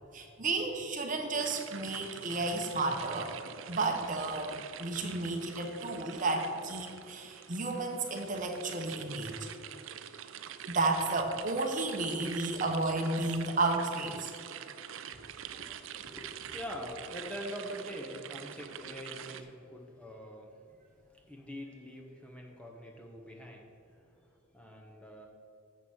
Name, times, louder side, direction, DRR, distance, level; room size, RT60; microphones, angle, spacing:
voice 1, 0.1-3.3 3.7-9.5 10.7-14.3, right 3 dB, 35° right, 3 dB, 0.8 m, -32 dB
sound 1, 1.4-19.4, right 9 dB, 60° right, 0.4 m, -45 dB
voice 2, 15.6-20.5 21.0-25.3, equal, 5° left, 1 dB, 0.8 m, -44 dB
7.3 x 6.7 x 6.3 m, 2.5 s
head